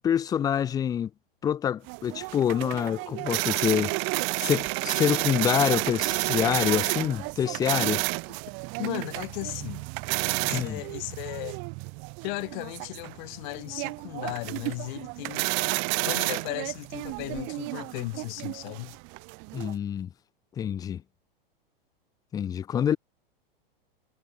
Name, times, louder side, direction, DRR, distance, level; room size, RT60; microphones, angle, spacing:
voice 1, 0.0-1.1 1.4-3.9 4.4-8.0 10.5-10.8 19.5-20.1 20.6-21.0 22.3-23.0, left 9 dB, 15° left, 0.4 m, -26 dB
sound 1, 1.9-19.7, right 35 dB, 40° right, 1.1 m, -31 dB
voice 2, 8.8-9.8 10.4-11.6 12.2-15.5 16.1-18.9, left 27 dB, 50° left, 4.2 m, -36 dB
hypercardioid pair, 115°, 29 cm